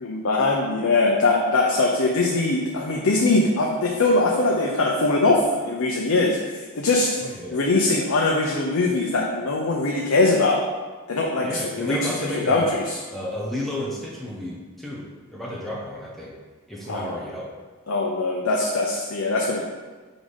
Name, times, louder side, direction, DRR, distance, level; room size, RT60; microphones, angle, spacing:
voice 1, 0.0-7.1 7.5-10.6 11.1-12.8 16.9-17.2 17.9-19.6, left 2 dB, 70° left, -1 dB, 0.7 m, -22 dB
voice 2, 7.2-7.6 11.4-12.7 13.1-15.1 15.3-16.3 16.7-17.5, left 1 dB, ahead, -5 dB, 0.8 m, -32 dB
4.9 x 4.0 x 5.2 m, 1.4 s
head